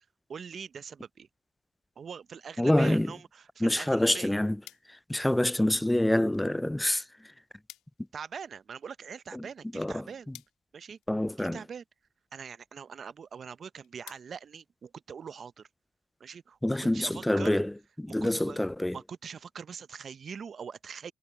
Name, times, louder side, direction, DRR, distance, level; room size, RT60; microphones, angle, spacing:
voice 1, 0.3-1.3 2.0-4.4 8.1-10.3 10.7-11.0 11.4-11.8 12.3-15.7 16.2-17.6 18.1-18.6 18.9-21.1, right 6 dB, 40° right, 0.6 m, -43 dB
voice 2, 2.6-3.1 3.6-4.6 4.9-7.0 9.3-9.4 9.7-10.0 11.1-11.6 16.6-19.0, left 1 dB, 5° left, 0.4 m, -26 dB
sound 1, 4.6-15.4, left 14 dB, 85° left, 1.8 m, -59 dB
cardioid pair, 100°, 0 cm